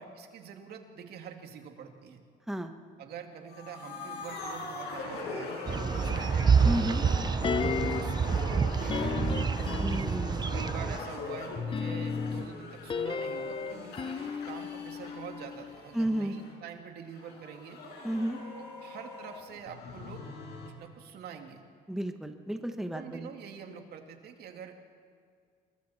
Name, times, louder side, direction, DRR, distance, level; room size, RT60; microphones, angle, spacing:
voice 1, 0.0-2.2 3.0-6.5 7.8-9.5 10.5-14.2 14.5-17.8 18.5-20.3 20.6-21.6 22.9-24.7, right 7 dB, 70° right, 4 dB, 2.5 m, -46 dB
sound 1, 3.5-16.5 17.1-20.7, left 3 dB, 75° left, 5.6 m, -41 dB
sound 2, 5.7-11.0, right 6 dB, 25° right, 0.6 m, -28 dB
voice 2, 6.6-7.0 9.8-10.6 15.9-16.3 18.0-18.4 21.9-23.3, right 1 dB, ahead, 6 dB, 1.4 m, -32 dB
sound 3, 7.4-8.3 8.9-10.5 11.5-15.8 16.0-16.1, left 6 dB, 30° left, 0.8 m, -34 dB
27.0 x 22.0 x 4.4 m, 2.1 s
cardioid pair, 110°, 17 cm